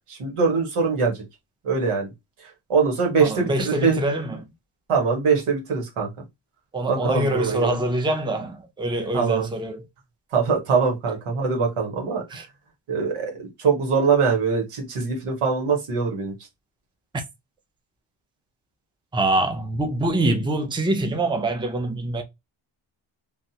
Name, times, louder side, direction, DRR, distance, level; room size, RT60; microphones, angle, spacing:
voice 1, 0.1-1.1 1.6-2.1 2.7-4.0 4.9-6.1 6.9-7.8 9.1-9.5 10.3-12.4 12.9-16.3, right 5 dB, 85° right, 1.6 m, -22 dB
voice 2, 3.2-4.5 6.7-9.9 12.3-12.5 17.1-17.2 19.1-22.2, right 1 dB, 10° right, 0.6 m, -25 dB
3.4 x 2.5 x 2.8 m
cardioid pair, 90°, 50 cm